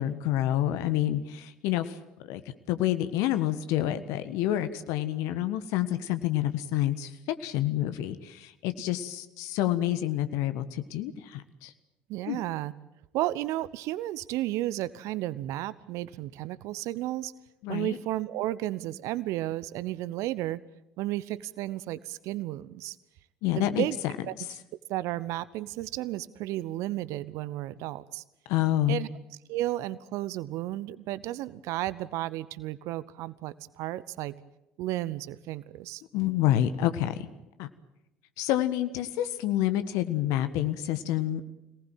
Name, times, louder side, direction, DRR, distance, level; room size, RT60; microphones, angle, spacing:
voice 1, 0.0-2.0 2.3-2.4 2.7-11.7 12.3-12.4 17.6-18.0 23.4-23.8 28.5-29.0 36.1-37.3 37.6-37.7 38.4-41.4, left 13 dB, 60° left, 11 dB, 1.5 m, -28 dB
voice 2, 12.1-12.7 13.1-17.3 17.7-20.6 21.0-23.0 23.5-24.0 24.3-24.4 24.9-28.2 28.9-29.1 29.5-34.3 34.8-36.0, right 15 dB, 60° right, 18 dB, 0.9 m, -33 dB
26.0 x 19.0 x 9.1 m, 0.92 s
figure-of-eight pair, 60°, 6 cm